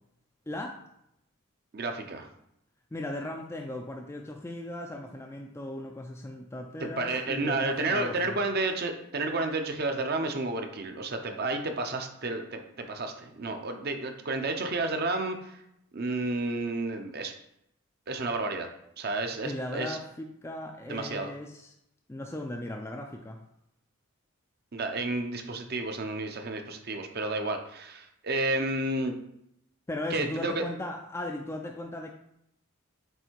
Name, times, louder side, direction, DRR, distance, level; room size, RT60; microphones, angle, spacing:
voice 1, 0.5-0.8 2.9-8.4 19.4-21.7 22.1-23.4 29.9-32.1, left 1 dB, 10° left, 1 dB, 0.3 m, -37 dB
voice 2, 1.7-2.3 6.8-15.6 15.9-17.3 18.1-18.7 19.0-20.0 20.9-21.3 24.7-29.1 30.1-30.6, right 2 dB, 45° right, 5 dB, 0.7 m, -31 dB
7.8 x 2.7 x 4.5 m, 0.78 s
head